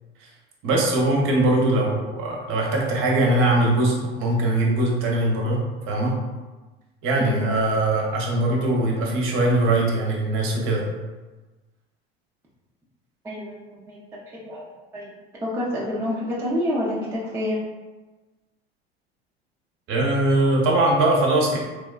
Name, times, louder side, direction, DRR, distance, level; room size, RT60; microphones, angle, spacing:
voice 1, 0.6-5.6 5.9-6.1 7.0-10.8 19.9-21.6, right 2 dB, 40° right, -1 dB, 0.7 m, -21 dB
voice 2, 7.2-7.5 13.2-13.5 13.9-14.0 14.3-14.6 14.9-15.1 15.4-17.6, left 1 dB, 10° right, -6 dB, 0.4 m, -27 dB
3.1 x 2.1 x 2.3 m, 1.2 s
figure-of-eight pair, 75°, 31 cm